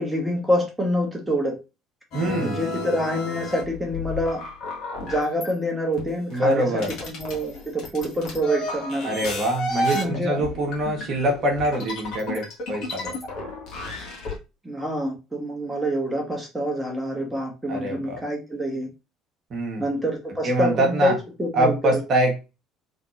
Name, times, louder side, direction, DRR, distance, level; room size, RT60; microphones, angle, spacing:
voice 1, 0.0-1.5 2.4-4.4 5.0-9.1 9.9-10.4 14.6-18.9 19.8-22.0, equal, 10° right, 0 dB, 1.3 m, -26 dB
sound 1, 2.1-5.5 6.0-14.4, left 1 dB, 50° left, 1.4 m, -32 dB
voice 2, 2.1-2.6 6.3-6.9 9.0-13.1 17.7-18.2 19.5-19.8 20.4-21.2 21.5-22.4, right 1 dB, 45° right, 1 dB, 1.3 m, -24 dB
3.3 x 3.2 x 2.7 m, 0.28 s
figure-of-eight pair, 55°, 0 cm